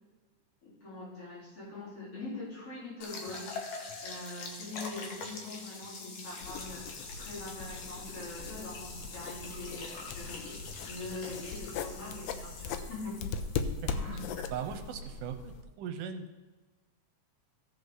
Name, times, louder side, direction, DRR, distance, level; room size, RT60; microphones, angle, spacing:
voice 1, 0.6-13.2 13.9-14.5, left 2 dB, 45° left, -8 dB, 4.5 m, -43 dB
sound 1, 3.0-14.9, left 3 dB, 70° left, 2.4 m, -45 dB
sound 2, 6.4-15.6, left 5 dB, 85° left, 1.5 m, -40 dB
voice 2, 14.5-16.3, right 8 dB, 85° right, 6 dB, 2.4 m, -39 dB
16.0 x 5.6 x 3.8 m, 1.2 s
omnidirectional pair, 3.6 m